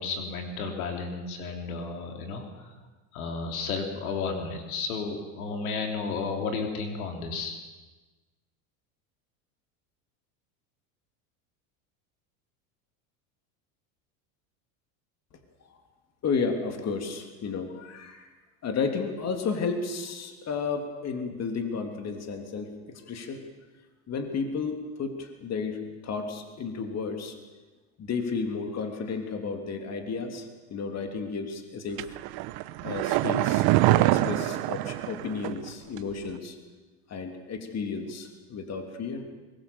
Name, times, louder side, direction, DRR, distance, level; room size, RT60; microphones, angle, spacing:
voice 1, 0.0-2.7 3.1-7.6, left 4 dB, 85° left, 4 dB, 3.5 m, -33 dB
voice 2, 16.2-18.3 18.6-22.7 23.1-23.4 24.1-27.4 28.0-32.1 32.8-36.6 37.1-39.2, left 5 dB, 35° left, 5 dB, 3.2 m, -32 dB
sound 1, 32.0-35.7 36.0-36.1, right 17 dB, 60° right, 1.2 m, -25 dB
23.5 x 21.0 x 7.0 m, 1.2 s
supercardioid pair, 105°, 42 cm